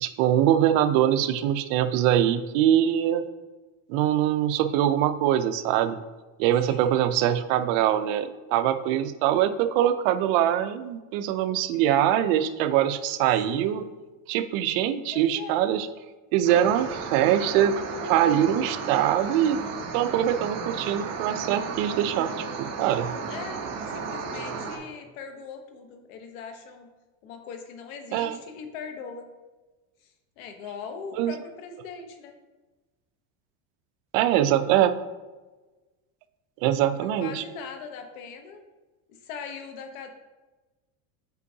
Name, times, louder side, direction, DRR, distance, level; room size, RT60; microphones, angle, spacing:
voice 1, 0.0-3.2 3.9-6.0 6.4-13.8 14.3-15.9 16.3-19.6 19.9-23.1 28.1-28.4 31.2-31.3 34.1-35.0 36.6-37.4, right 11 dB, 70° right, 11 dB, 0.6 m, -23 dB
voice 2, 6.7-7.0 13.5-13.8 15.1-15.6 23.3-26.9 27.2-29.3 30.0-32.4 36.7-38.6 39.1-40.1, left 5 dB, 90° left, 6 dB, 1.0 m, -40 dB
sound 1, 16.5-24.8, right 5 dB, 40° right, 1.0 m, -34 dB
8.1 x 4.5 x 2.7 m, 1.2 s
supercardioid pair, 135°, 40 cm